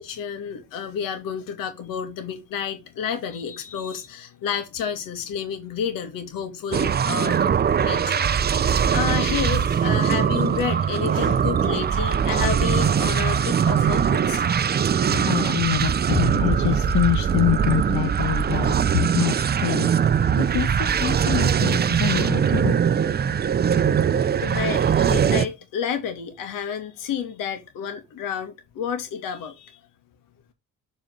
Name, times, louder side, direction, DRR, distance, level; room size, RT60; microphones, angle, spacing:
voice 1, 0.0-7.4 7.8-14.5 24.4-29.8, left 7 dB, 85° left, 2.2 m, -30 dB
sound 1, 6.7-25.5, right 7 dB, 30° right, 0.5 m, -21 dB
voice 2, 15.1-23.0, left 11 dB, 60° left, 1.1 m, -26 dB
7.3 x 4.2 x 3.9 m
cardioid pair, 95°, 32 cm